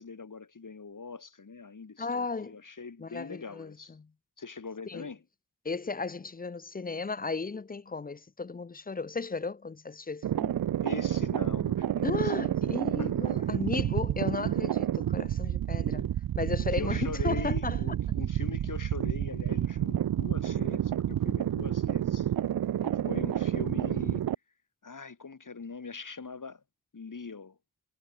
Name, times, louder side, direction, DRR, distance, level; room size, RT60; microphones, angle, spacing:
voice 1, 0.0-4.0 4.4-5.2 10.8-12.6 13.0-13.5 16.7-22.3 23.0-24.3 24.8-26.6 26.9-27.6, left 4 dB, 50° left, 4.0 m, -42 dB
voice 2, 2.0-2.6 3.0-4.1 4.9-5.1 5.6-10.5 12.0-17.8 22.8-23.1, left 4 dB, 25° left, 0.5 m, -35 dB
sound 1, 10.2-24.4, right 11 dB, 65° right, 0.5 m, -29 dB
wide cardioid pair, 70°, 39 cm